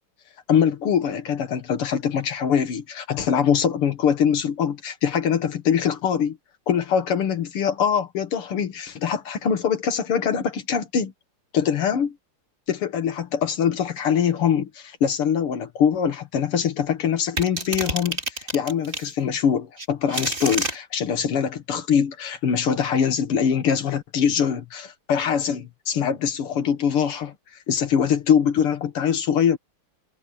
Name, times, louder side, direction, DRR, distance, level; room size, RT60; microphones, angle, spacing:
voice 1, 0.5-6.4 6.7-11.1 11.5-12.1 12.7-27.3 27.7-29.6, left 7 dB, 80° left, 2.5 m, -23 dB
sound 1, 17.4-19.1 19.8-20.8, right 2 dB, 25° right, 3.3 m, -28 dB
omnidirectional pair, 2.4 m